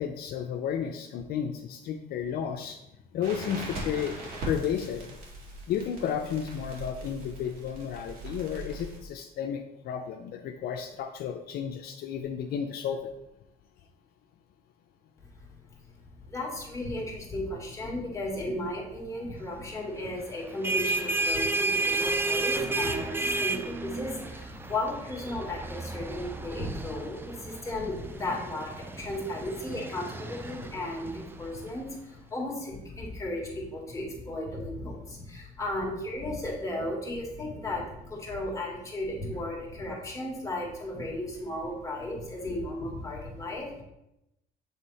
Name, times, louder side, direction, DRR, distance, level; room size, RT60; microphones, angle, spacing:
voice 1, 0.0-2.8 3.1-4.2 4.5-5.2 5.7-13.1, left 8 dB, 65° left, 4 dB, 0.5 m, -32 dB
Crackle, 3.2-9.0, right 2 dB, 60° right, 2.1 m, -40 dB
voice 2, 16.3-43.8, left 1 dB, 20° left, -2 dB, 1.9 m, -35 dB
sound 1, 20.4-31.7, right 3 dB, 15° right, 0.5 m, -32 dB
7.3 x 3.5 x 4.2 m, 0.86 s
cardioid pair, 110°, 17 cm